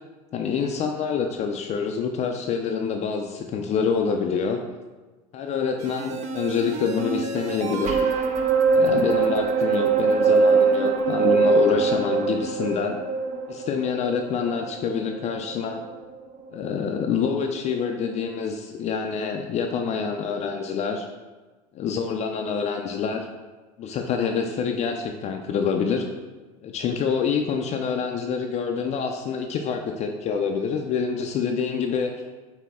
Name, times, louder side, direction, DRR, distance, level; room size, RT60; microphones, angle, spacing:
voice 1, 0.3-4.6 5.3-8.0 8.7-13.0 13.5-15.8 16.5-21.1 21.7-23.3 23.8-26.0 26.6-32.1, left 6 dB, 40° left, 3 dB, 0.4 m, -26 dB
sound 1, 5.8-16.2 16.6-16.7, right 4 dB, 40° right, 0.5 m, -23 dB
6.0 x 2.1 x 3.5 m, 1.2 s
supercardioid pair, 105°, 18 cm